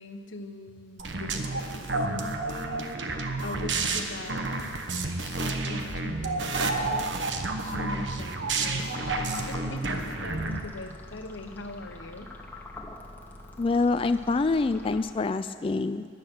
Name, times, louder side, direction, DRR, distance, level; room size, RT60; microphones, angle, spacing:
voice 1, 0.0-3.0 3.4-4.5 5.2-7.1 7.6-12.3, left 2 dB, 90° left, 7 dB, 1.0 m, -41 dB
sound 1, 1.0-10.6, right 3 dB, 70° right, 1.1 m, -30 dB
sound 2, 9.0-15.5, left 2 dB, 10° left, 1.1 m, -45 dB
voice 2, 13.6-16.1, left 3 dB, 30° left, 10 dB, 0.3 m, -26 dB
17.0 x 10.5 x 6.1 m, 2.1 s
head